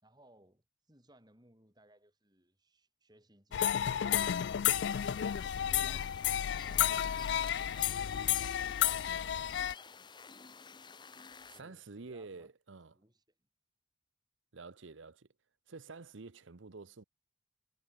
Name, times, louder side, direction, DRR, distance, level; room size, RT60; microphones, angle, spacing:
voice 1, 0.0-4.8 5.1-7.3 7.6-10.5 11.5-12.5 12.9-13.5, right 1 dB, 20° right, 6.5 m, -65 dB
sound 1, 3.5-9.7, left 10 dB, 60° left, 0.3 m, -32 dB
sound 2, 4.8-11.6, left 5 dB, 25° left, 1.0 m, -52 dB
voice 2, 11.5-13.0 14.5-15.3 15.7-17.0, right 4 dB, 75° right, 0.9 m, -49 dB
head